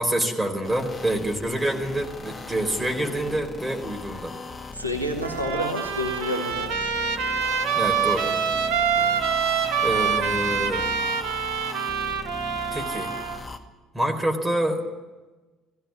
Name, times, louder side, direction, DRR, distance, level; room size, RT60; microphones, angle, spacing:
voice 1, 0.0-4.4 7.8-8.3 9.8-10.8 12.7-13.1 13.9-14.8, right 1 dB, 10° right, 3 dB, 4.4 m, -26 dB
sound 1, 0.6-13.6, left 3 dB, 30° left, 2.1 m, -39 dB
voice 2, 4.7-6.9, left 1 dB, 90° right, 2 dB, 1.7 m, -29 dB
Trumpet, 5.2-13.4, right 6 dB, 60° right, 1.5 m, -26 dB
19.0 x 16.0 x 9.7 m, 1.2 s
figure-of-eight pair, 50°, 0 cm